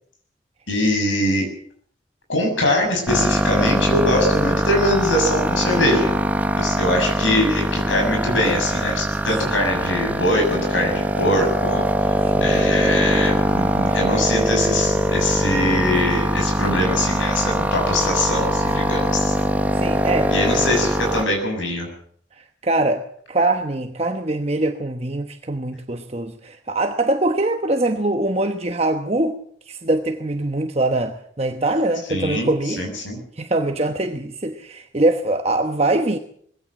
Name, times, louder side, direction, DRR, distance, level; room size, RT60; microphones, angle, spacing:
voice 1, 0.7-1.5 2.3-6.2 6.6-19.3 20.3-21.9 32.1-33.2, left 1 dB, 85° left, 6.9 m, -22 dB
sound 1, 3.1-21.2, equal, 10° right, 1.2 m, -22 dB
voice 2, 19.7-20.6 22.4-29.4 29.7-32.8 33.4-36.2, right 2 dB, 35° right, 1.1 m, -23 dB
21.0 x 16.5 x 7.6 m
head